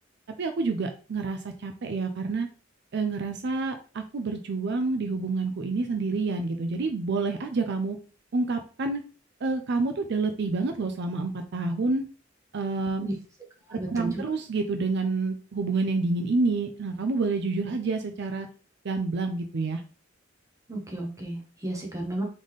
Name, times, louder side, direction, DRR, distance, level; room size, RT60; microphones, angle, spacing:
voice 1, 0.4-2.5 2.9-8.0 8.3-9.0 9.4-12.1 12.5-13.1 13.7-18.5 18.8-19.8, right 3 dB, 60° right, 6 dB, 0.5 m, -28 dB
voice 2, 13.7-14.2 20.7-22.2, right 1 dB, 15° right, 0 dB, 1.1 m, -33 dB
3.9 x 3.7 x 3.2 m, 0.37 s
head